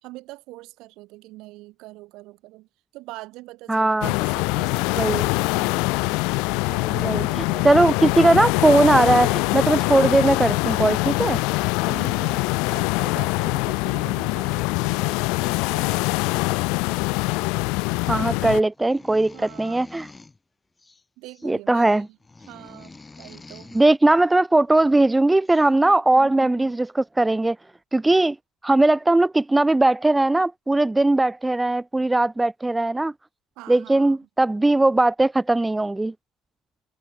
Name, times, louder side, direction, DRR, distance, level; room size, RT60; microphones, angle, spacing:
voice 1, 0.0-2.7 2.9-5.8 6.5-8.1 11.8-16.1 17.5-17.6 19.3-19.8 21.2-22.2 22.5-23.8 26.1-26.8 33.6-34.2, right 20 dB, 75° right, 1.9 m, -43 dB
voice 2, 3.7-4.1 5.0-5.2 7.0-7.3 7.6-11.4 18.1-20.1 21.4-22.1 23.7-27.6 27.9-28.4 28.6-33.1 33.7-36.1, right 2 dB, 10° right, 0.4 m, -19 dB
sound 1, 4.0-18.6, left 28 dB, 85° left, 0.4 m, -23 dB
sound 2, 18.7-20.4 20.8-21.5 21.8-23.9 25.0-25.1 25.5-25.7, left 3 dB, 20° left, 3.5 m, -46 dB
supercardioid pair, 85°, 0 cm